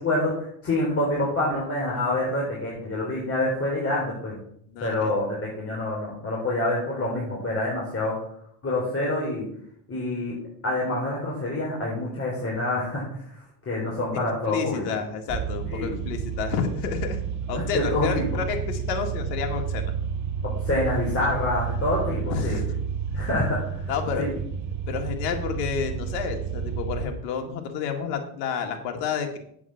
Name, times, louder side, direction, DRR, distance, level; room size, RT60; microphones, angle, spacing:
voice 1, 0.0-4.4 4.8-8.2 8.6-9.5 9.9-10.4 10.6-14.9 15.7-16.0 17.5-18.2 20.4-22.6 23.1-23.9 24.2-24.3, left 2 dB, 25° left, -4 dB, 4.1 m, -27 dB
voice 2, 4.7-5.1 14.5-19.9 22.3-22.7 23.9-24.3 24.9-29.4, left 6 dB, 80° left, 4 dB, 2.1 m, -30 dB
sound 1, 15.3-27.1, right 7 dB, 35° right, 0.8 m, -30 dB
8.3 x 7.8 x 5.9 m, 0.67 s
supercardioid pair, 95°, 50 cm